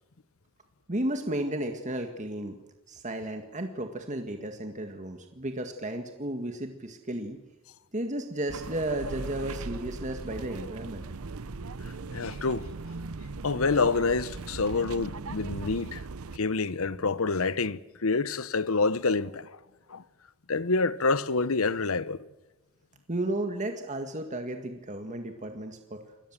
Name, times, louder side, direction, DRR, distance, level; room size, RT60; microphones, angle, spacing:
voice 1, 0.9-2.6 2.9-7.4 7.9-11.0 23.1-26.0, right 1 dB, 35° right, 1.8 m, -33 dB
sound 1, 8.5-16.4, right 3 dB, 85° right, 0.8 m, -39 dB
voice 2, 12.1-12.7 13.4-16.0 16.3-19.6 19.9-20.0 20.5-22.3, left 4 dB, 80° left, 1.0 m, -27 dB
27.5 x 22.0 x 7.5 m
head